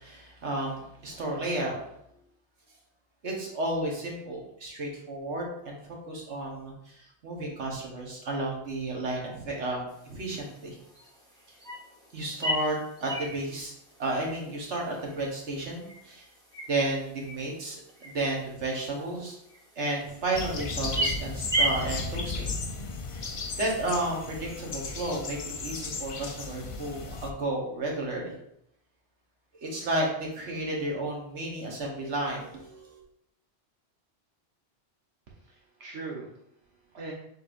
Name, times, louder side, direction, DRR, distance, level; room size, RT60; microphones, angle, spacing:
voice 1, 0.0-1.8 3.2-10.8 12.1-13.7 14.0-16.3 16.7-19.4 19.8-22.5 23.1-23.2 23.6-28.3 29.6-33.0, right 2 dB, 90° right, -1 dB, 1.4 m, -32 dB
sound 1, 9.9-22.0, right 1 dB, 5° left, 0.9 m, -36 dB
sound 2, 20.3-27.3, left 4 dB, 60° left, 0.3 m, -35 dB
voice 2, 35.3-37.1, right 3 dB, 70° right, -2 dB, 1.1 m, -42 dB
6.4 x 3.3 x 2.5 m, 0.74 s
omnidirectional pair, 1.2 m